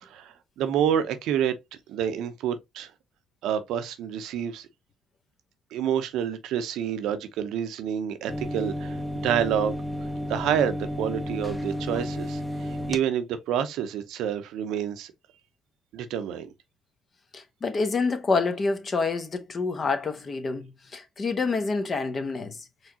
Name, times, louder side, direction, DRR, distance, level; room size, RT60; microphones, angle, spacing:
voice 1, 0.0-1.6 1.9-2.9 3.4-4.7 5.7-9.0 9.2-9.8 10.3-15.1 15.9-16.5, right 9 dB, 80° right, 0.7 m, -28 dB
sound 1, 8.3-13.0, equal, 10° left, 0.8 m, -32 dB
voice 2, 17.3-20.7 20.9-22.6, left 4 dB, 40° left, 1.0 m, -27 dB
4.6 x 3.2 x 2.8 m
cardioid pair, 90°, 0 cm